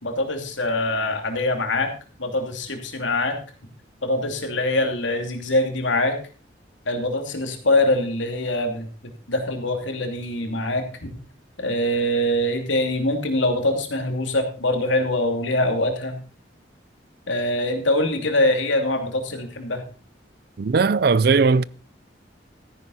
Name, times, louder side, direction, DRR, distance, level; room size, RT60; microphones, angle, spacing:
voice 1, 0.0-1.9 2.2-3.3 4.0-6.1 6.9-8.9 9.3-11.1 11.6-16.2 17.3-19.8, left 1 dB, 90° left, 2.8 m, -23 dB
voice 2, 20.6-21.6, right 4 dB, 55° right, 0.5 m, -18 dB
14.0 x 9.9 x 4.1 m
head